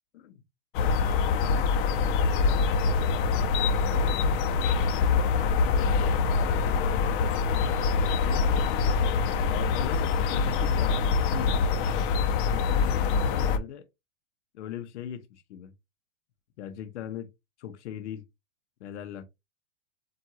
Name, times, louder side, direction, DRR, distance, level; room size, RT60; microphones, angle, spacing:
Birds and ambience, 0.7-13.6, left 5 dB, 45° left, 0.8 m, -25 dB
voice 1, 5.1-8.6 9.5-11.7 12.4-13.9 14.5-15.7 16.6-17.3 17.6-18.2 18.8-19.2, left 10 dB, 70° left, 0.9 m, -40 dB
7.6 x 2.6 x 2.7 m
hypercardioid pair, 140°, 36 cm